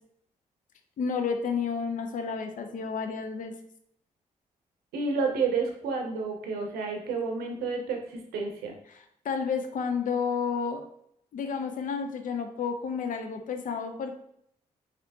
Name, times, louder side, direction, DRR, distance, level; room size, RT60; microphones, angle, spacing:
voice 1, 1.0-3.5 8.9-10.8 11.3-14.1, left 6 dB, 60° left, 6 dB, 0.5 m, -31 dB
voice 2, 4.9-8.7, right 4 dB, 90° right, 2 dB, 0.6 m, -30 dB
3.3 x 2.7 x 2.7 m, 0.70 s
supercardioid pair, 45°, 15 cm